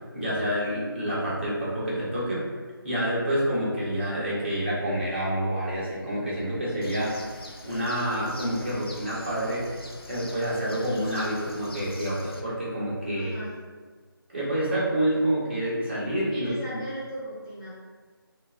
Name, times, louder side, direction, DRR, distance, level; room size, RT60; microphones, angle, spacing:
voice 1, 0.1-2.4 2.8-7.2 7.6-9.7 10.1-13.4 14.3-16.5, right 1 dB, 30° right, -8 dB, 0.9 m, -28 dB
Bird, 6.8-12.4, left 2 dB, 80° left, 0.6 m, -44 dB
voice 2, 13.1-13.7 16.3-17.7, equal, 15° left, -14 dB, 0.7 m, -37 dB
5.4 x 2.1 x 2.5 m, 1.5 s
figure-of-eight pair, 170°, 12 cm